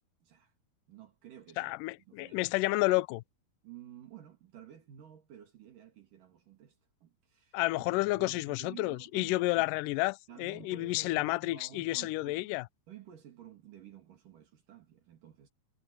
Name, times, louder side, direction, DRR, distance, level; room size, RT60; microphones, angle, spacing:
voice 1, 0.2-0.5 0.9-1.7 2.1-2.5 3.6-9.7 10.3-12.5 12.9-15.5, right 10 dB, 60° right, 3.6 m, -52 dB
voice 2, 1.6-3.2 7.5-12.6, left 20 dB, 85° left, 1.9 m, -30 dB
omnidirectional pair, 4.4 m